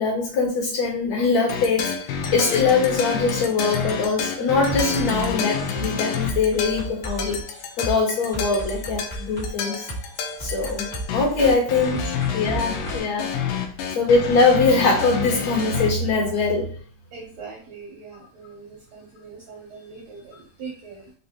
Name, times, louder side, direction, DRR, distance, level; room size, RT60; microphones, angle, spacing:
voice 1, 0.0-7.4 7.8-9.9 10.4-10.9 11.1-13.3 14.0-16.7, left 4 dB, 60° left, -2 dB, 2.1 m, -22 dB
sound 1, 1.5-15.9, left 7 dB, 80° left, 2.0 m, -29 dB
sound 2, 4.7-13.0, right 2 dB, 40° left, 0.6 m, -34 dB
voice 2, 17.1-21.1, right 5 dB, 75° right, -3 dB, 1.6 m, -41 dB
5.1 x 2.7 x 2.8 m, 0.42 s
omnidirectional pair, 3.9 m